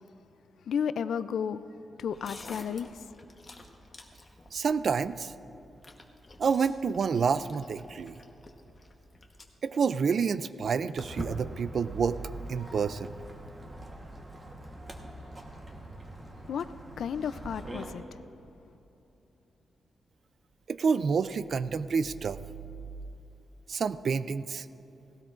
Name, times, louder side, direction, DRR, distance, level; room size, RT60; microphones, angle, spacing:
voice 1, 0.7-1.6 2.0-2.9 16.5-16.7 17.0-18.0, left 7 dB, 70° left, 14 dB, 0.4 m, -32 dB
sound 1, 2.1-9.4, left 2 dB, 25° left, 1.1 m, -51 dB
voice 2, 4.5-5.3 6.4-8.1 9.6-12.2 12.5-13.1 20.7-22.4 23.7-24.6, right 5 dB, 50° right, 15 dB, 0.4 m, -28 dB
Walk footsteps, 11.0-17.9, right 1 dB, 25° right, 1.2 m, -43 dB
18.0 x 17.0 x 2.5 m, 3.0 s
wide cardioid pair, 140°, 0 cm